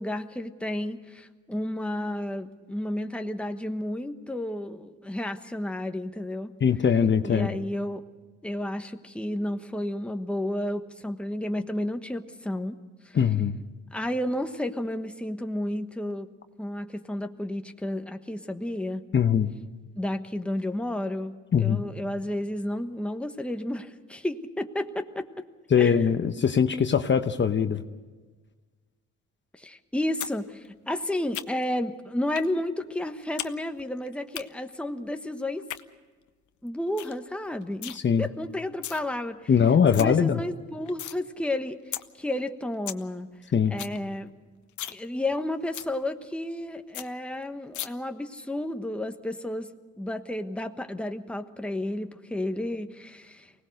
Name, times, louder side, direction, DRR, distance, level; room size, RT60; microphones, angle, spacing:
voice 1, 0.0-6.5 7.2-8.0 8.4-12.8 13.0-13.2 13.9-16.3 16.6-19.0 19.9-25.3 25.7-26.1 29.5-35.7 36.6-39.4 39.9-43.3 43.7-44.3 44.9-49.7 50.0-53.5, left 1 dB, 5° left, 6 dB, 1.2 m, -32 dB
voice 2, 6.6-7.5 13.1-13.6 19.1-19.5 21.5-21.8 25.7-27.8 37.9-38.3 39.5-40.4 43.5-43.8, left 7 dB, 40° left, 8 dB, 1.0 m, -22 dB
sound 1, 30.2-30.4 30.7-31.8 32.4-32.5 32.8-33.5 33.8-34.4 35.5-35.8 36.3-36.4 36.7-36.8 37.0-37.2 37.5-38.0 38.6-39.0 39.4-39.5 39.7-40.1 40.4-41.2 41.5-41.6 41.9-42.0 42.4-42.5 42.7-43.0 43.4-43.5 43.7-44.0 44.3-44.4 44.7-45.0 45.3-45.4 45.7-45.9 46.3-46.4 46.6-46.7 46.9-47.1 47.7-47.9, left 12 dB, 75° left, 0.9 m, -36 dB
24.5 x 18.5 x 6.5 m, 1.4 s
cardioid pair, 90°, 30 cm